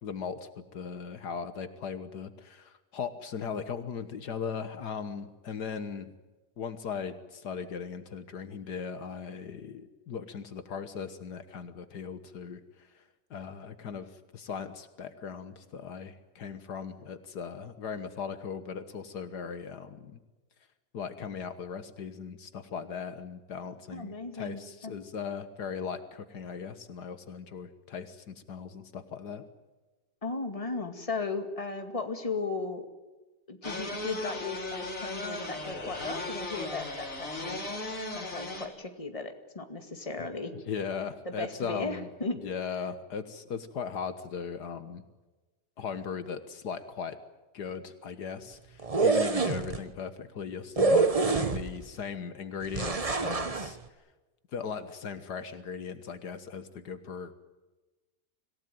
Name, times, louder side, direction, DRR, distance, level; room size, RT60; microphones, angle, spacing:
voice 1, 0.0-6.1 6.6-12.9 13.3-20.2 20.9-29.5 40.5-42.1 42.4-45.0 45.8-47.2 47.5-53.8 54.5-57.3, left 6 dB, 75° left, 11 dB, 1.9 m, -38 dB
voice 2, 23.9-24.9 30.2-32.9 33.5-37.6 38.1-40.5 41.2-42.4, left 3 dB, 20° left, 6 dB, 2.3 m, -36 dB
sound 1, 33.6-38.7, left 2 dB, 50° left, 4.0 m, -37 dB
sound 2, 48.8-49.8 50.8-51.8 52.7-53.7, right 4 dB, 25° right, 1.1 m, -26 dB
26.0 x 17.0 x 9.2 m, 1.2 s
omnidirectional pair, 1.8 m